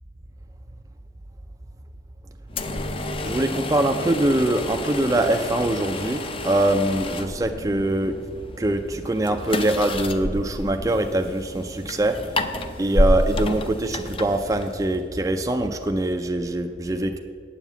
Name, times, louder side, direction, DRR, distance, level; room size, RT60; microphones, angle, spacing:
sound 1, 2.5-15.0, left 1 dB, 30° left, 0.5 m, -29 dB
voice 1, 3.2-8.2 8.6-12.2 12.8-17.2, right 1 dB, 20° right, 4 dB, 0.4 m, -23 dB
9.1 x 7.4 x 8.0 m, 2.2 s
head